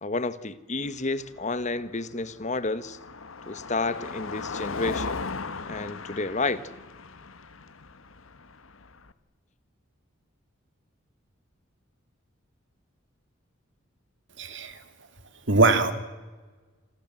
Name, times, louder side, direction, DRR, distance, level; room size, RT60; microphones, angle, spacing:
voice 1, 0.0-3.0 3.5-5.2 5.7-6.6, left 3 dB, 35° left, 1.2 m, -30 dB
Car passing by, 0.8-9.1, left 4 dB, 80° left, 1.4 m, -38 dB
voice 2, 14.4-14.8 15.5-15.9, right 3 dB, 60° right, 2.8 m, -21 dB
28.0 x 25.0 x 7.6 m
head